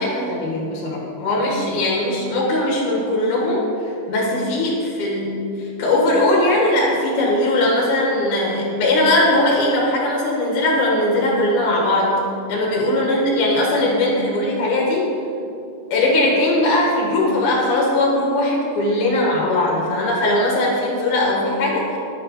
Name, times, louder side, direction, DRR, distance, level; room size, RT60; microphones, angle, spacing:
voice 1, 0.0-12.1 12.5-15.1 15.9-22.0, left 1 dB, 70° left, -3 dB, 2.9 m, -19 dB
11.0 x 4.4 x 4.2 m, 2.6 s
omnidirectional pair, 3.8 m